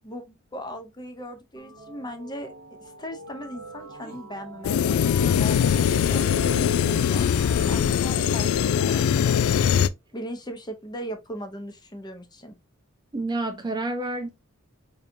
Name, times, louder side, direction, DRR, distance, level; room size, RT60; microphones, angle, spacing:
voice 1, 0.0-2.5 2.8-5.6 6.1-7.3 7.7-9.6 10.1-12.5, equal, 20° left, 0.7 m, -38 dB
sound 1, 1.6-8.8, right 4 dB, 75° right, 0.8 m, -43 dB
sound 2, 4.0-4.2 5.6-6.8 7.5-8.5 9.0-9.5, left 2 dB, 45° left, 1.0 m, -48 dB
sound 3, 4.6-9.9, left 8 dB, 90° left, 0.3 m, -22 dB
voice 2, 13.1-14.3, right 2 dB, 20° right, 0.4 m, -28 dB
4.7 x 2.8 x 2.6 m
head